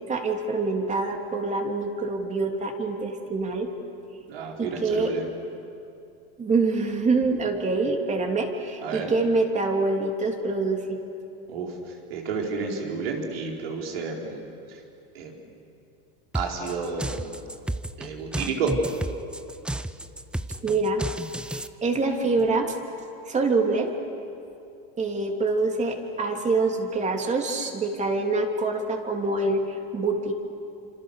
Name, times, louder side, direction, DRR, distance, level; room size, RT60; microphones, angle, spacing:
voice 1, 0.0-3.7 4.6-5.1 6.4-11.0 20.6-21.0 21.5-22.7 23.3-23.9 25.0-30.3, right 3 dB, 25° right, 3 dB, 3.2 m, -25 dB
voice 2, 4.3-5.2 8.8-9.1 11.5-14.4 15.1-15.3 16.3-17.4 18.0-18.8, right 4 dB, 85° right, 0 dB, 4.5 m, -31 dB
sound 1, 16.3-21.7, right 1 dB, 5° right, 0.7 m, -32 dB
27.0 x 26.5 x 6.7 m, 2.6 s
supercardioid pair, 110°, 29 cm